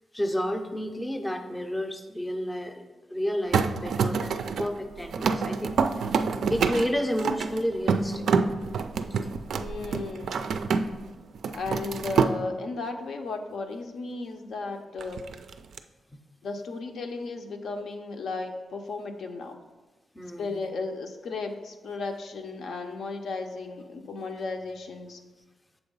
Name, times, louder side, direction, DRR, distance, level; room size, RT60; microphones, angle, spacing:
voice 1, 0.1-2.8 3.1-5.8 6.5-8.3 16.1-16.2 20.1-20.7, equal, 10° left, 6 dB, 0.5 m, -31 dB
sound 1, 3.5-11.1 11.3-12.3 15.0-15.8, right 5 dB, 70° right, 0.3 m, -27 dB
voice 2, 9.6-10.5 11.5-15.2 16.4-19.6 20.4-25.2, left 3 dB, 65° left, 4 dB, 0.6 m, -35 dB
7.1 x 3.9 x 5.3 m, 1.2 s
wide cardioid pair, 160°, 0 cm